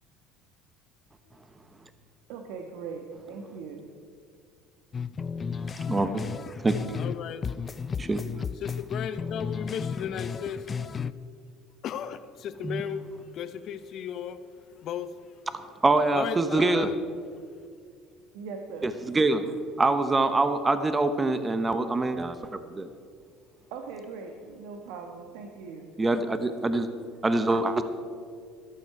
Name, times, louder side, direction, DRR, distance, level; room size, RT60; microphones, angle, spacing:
voice 1, 2.3-3.9 18.3-18.9 23.7-25.9, right 5 dB, 80° right, 3 dB, 1.3 m, -40 dB
sound 1, 4.9-7.2 7.4-11.1, left 6 dB, 30° left, 0.4 m, -33 dB
voice 2, 5.9-6.8 8.0-8.2 12.6-12.8 15.8-16.9 18.8-19.4 19.8-22.9 26.0-26.9 27.2-27.8, right 2 dB, 20° right, 10 dB, 0.9 m, -25 dB
voice 3, 6.9-7.5 8.6-10.7 11.8-14.4 14.8-15.1 16.1-17.3, left 8 dB, 55° left, 12 dB, 0.8 m, -35 dB
13.5 x 12.0 x 4.7 m, 2.2 s
supercardioid pair, 110°, 0 cm